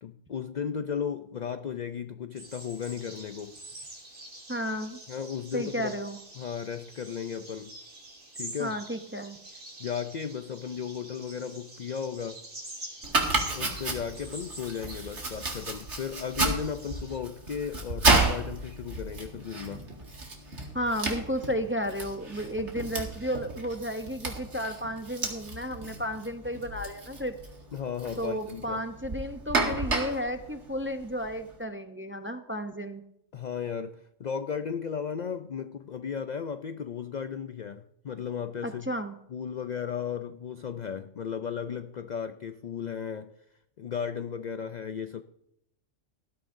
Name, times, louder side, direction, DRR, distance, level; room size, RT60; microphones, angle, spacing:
voice 1, 0.0-3.6 5.1-6.0 6.4-7.7 8.4-8.8 9.8-12.5 13.5-19.9 27.7-28.8 33.3-38.9 39.3-43.3 43.8-45.2, left 7 dB, 80° left, 10 dB, 0.4 m, -35 dB
sound 1, 2.4-17.2, right 1 dB, 85° right, 3.4 m, -46 dB
voice 2, 4.5-5.0 5.5-6.2 8.6-9.4 20.7-27.4 28.2-33.0 38.6-39.2, equal, 15° right, 7 dB, 0.4 m, -33 dB
Domestic sounds home sounds, 13.0-31.5, right 3 dB, 60° right, 2.4 m, -32 dB
18.5 x 13.0 x 2.6 m, 0.79 s
omnidirectional pair, 1.3 m